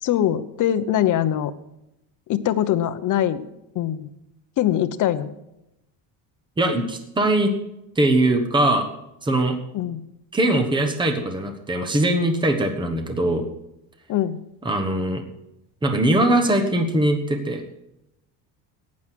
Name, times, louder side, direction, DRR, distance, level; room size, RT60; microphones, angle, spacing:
voice 1, 0.0-1.5 2.3-3.5 3.7-4.1 4.6-5.3 9.7-10.0 14.1-14.4, left 11 dB, 40° left, 11 dB, 0.9 m, -22 dB
voice 2, 6.6-7.5 8.0-8.9 9.2-9.6 10.3-13.4 14.6-15.2 15.8-17.6, right 1 dB, 10° right, 6 dB, 1.2 m, -21 dB
15.0 x 9.8 x 6.1 m, 0.88 s
cardioid pair, 165°, 45 cm